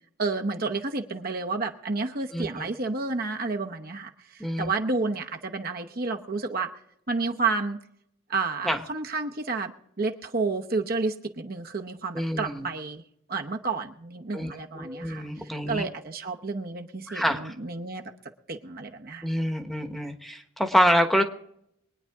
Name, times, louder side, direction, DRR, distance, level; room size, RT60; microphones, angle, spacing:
voice 1, 0.2-6.7 7.1-7.8 8.3-13.0 13.3-18.1 18.5-19.3, right 3 dB, 45° right, 4 dB, 0.9 m, -30 dB
voice 2, 2.3-2.6 4.4-4.7 8.6-8.8 12.1-12.7 14.3-14.5 14.7-15.8 17.1-17.5 19.2-21.2, equal, ahead, 6 dB, 1.1 m, -26 dB
23.5 x 9.6 x 3.5 m, 0.73 s
head